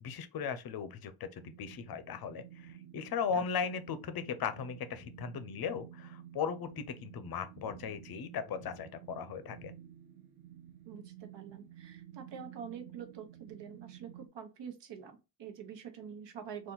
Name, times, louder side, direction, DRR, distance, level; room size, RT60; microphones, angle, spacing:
voice 1, 0.0-9.7, left 6 dB, 50° left, 0.6 m, -37 dB
sound 1, 1.4-14.3, right 11 dB, 40° right, 0.6 m, -53 dB
voice 2, 3.3-3.7 10.8-16.7, right 7 dB, 60° right, 1.1 m, -46 dB
4.2 x 2.5 x 3.8 m
wide cardioid pair, 170°, 47 cm